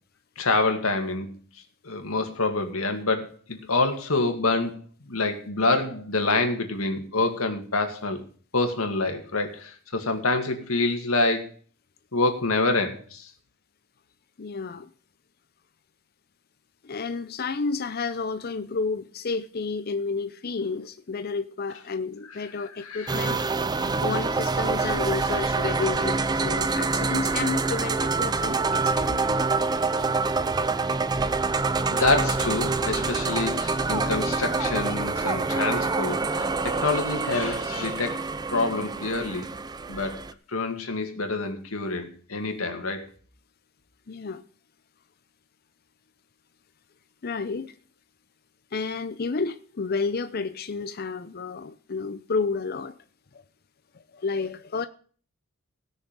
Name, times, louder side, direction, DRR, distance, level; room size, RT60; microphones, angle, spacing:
voice 1, 0.4-1.3 1.8-4.8 5.0-8.2 8.5-11.5 12.1-13.3 22.8-23.3 31.9-39.5 39.9-40.2 40.5-43.1, left 3 dB, 85° left, 2.1 m, -26 dB
voice 2, 14.4-14.9 16.8-23.4 24.0-29.2 44.1-44.4 47.2-47.7 48.7-52.9 53.3-53.4 54.1-54.9, left 4 dB, 50° left, 0.6 m, -31 dB
sound 1, 23.1-40.3, right 3 dB, 20° right, 0.5 m, -26 dB
17.0 x 6.5 x 5.2 m
head